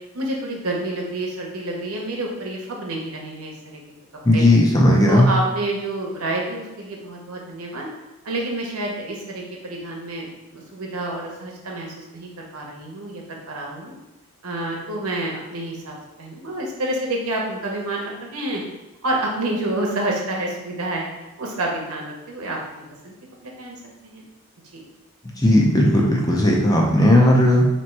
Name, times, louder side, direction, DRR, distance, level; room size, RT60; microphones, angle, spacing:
voice 1, 0.1-3.5 4.3-4.4 5.1-7.9 8.2-13.9 14.4-18.6 19.0-21.1 21.4-23.1 23.4-23.8 24.0-24.2, right 1 dB, 90° right, -1 dB, 0.9 m, -28 dB
voice 2, 4.2-5.3 25.4-27.7, left 1 dB, 15° left, -2 dB, 0.6 m, -16 dB
3.1 x 3.0 x 4.5 m, 1.0 s
head